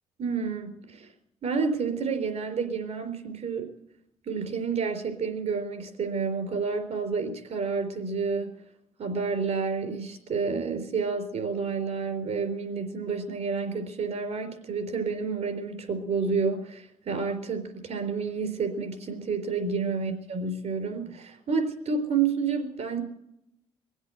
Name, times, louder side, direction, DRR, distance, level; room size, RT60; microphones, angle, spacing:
voice 1, 0.2-1.1 1.4-3.7 4.3-8.5 9.0-23.0, right 5 dB, 70° right, 5 dB, 4.0 m, -29 dB
22.0 x 8.0 x 7.8 m, 0.79 s
cardioid pair, 75°, 12 cm